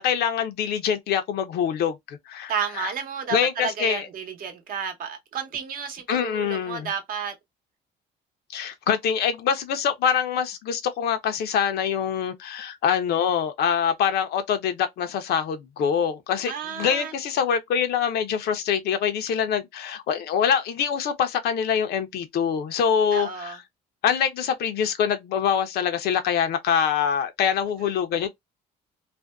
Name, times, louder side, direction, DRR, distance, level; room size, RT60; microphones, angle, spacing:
voice 1, 0.0-2.9 3.3-4.1 6.1-6.9 8.5-23.6 24.0-28.3, left 8 dB, 70° left, 0.6 m, -24 dB
voice 2, 2.5-7.3 16.5-17.1 23.1-23.6, right 7 dB, 55° right, 0.8 m, -31 dB
2.5 x 2.2 x 2.2 m
cardioid pair, 110°, 17 cm